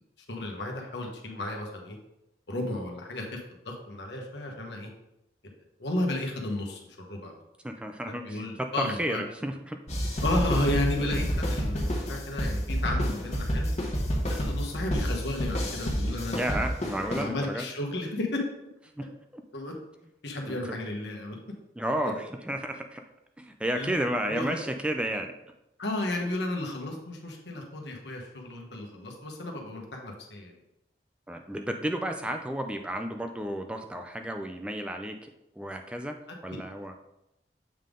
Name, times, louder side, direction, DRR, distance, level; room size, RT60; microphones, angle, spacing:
voice 1, 0.3-2.0 2.5-3.4 3.6-4.9 5.8-6.8 7.1-7.3 8.1-9.2 10.2-13.7 14.3-16.7 17.1-18.4 19.5-19.7 20.2-21.4 23.8-23.9 24.3-24.6 25.8-30.6 36.5-36.6, left 1 dB, 85° left, 1 dB, 1.2 m, -33 dB
voice 2, 7.6-9.8 11.9-12.0 16.3-17.7 19.0-19.1 19.3-19.4 20.5-20.8 21.8-23.0 23.4-25.3 31.3-35.3 35.6-36.2 36.4-37.0, right 1 dB, 5° right, 4 dB, 0.3 m, -32 dB
sound 1, 9.9-17.2, equal, 40° left, 1.2 m, -29 dB
7.5 x 3.6 x 3.7 m, 0.86 s
head